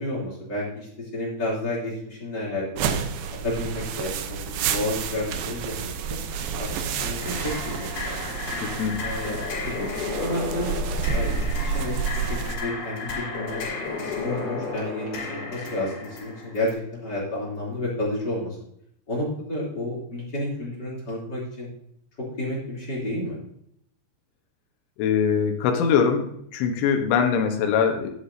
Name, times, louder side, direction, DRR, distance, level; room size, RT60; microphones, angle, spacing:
voice 1, 0.0-2.9 3.4-4.4 4.7-6.2 6.6-8.2 9.0-9.4 9.7-9.9 10.2-13.6 14.0-18.6 19.1-21.7 22.4-23.4, left 1 dB, 25° left, -5 dB, 3.0 m, -31 dB
sound 1, 2.8-12.6, right 6 dB, 90° right, 2.0 m, -30 dB
sound 2, 7.2-16.7, left 4 dB, 60° left, 5.4 m, -33 dB
voice 2, 25.0-26.3 26.5-28.1, left 6 dB, 85° left, 3 dB, 3.6 m, -22 dB
11.5 x 10.0 x 2.7 m, 0.73 s
omnidirectional pair, 5.2 m